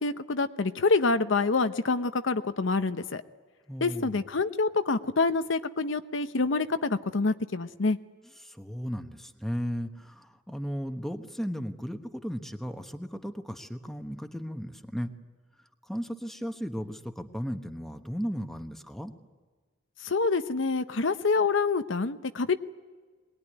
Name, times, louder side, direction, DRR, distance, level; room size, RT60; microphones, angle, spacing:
voice 1, 0.0-3.2 3.8-8.0 20.0-22.6, left 3 dB, 75° left, 10 dB, 0.8 m, -26 dB
voice 2, 3.7-4.2 8.4-15.1 15.8-19.1, equal, ahead, 6 dB, 1.1 m, -35 dB
23.0 x 19.0 x 9.9 m, 1.4 s
head